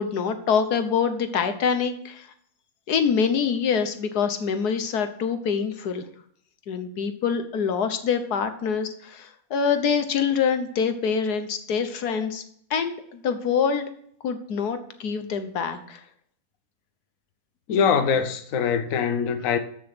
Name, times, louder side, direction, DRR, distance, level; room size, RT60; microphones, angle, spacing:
voice 1, 0.0-2.3 2.9-6.1 6.7-12.4 12.7-13.8 14.2-16.0, left 6 dB, 90° left, 1.6 m, -25 dB
voice 2, 17.7-19.6, left 6 dB, 60° left, 1.2 m, -23 dB
14.5 x 6.3 x 6.1 m
omnidirectional pair, 1.6 m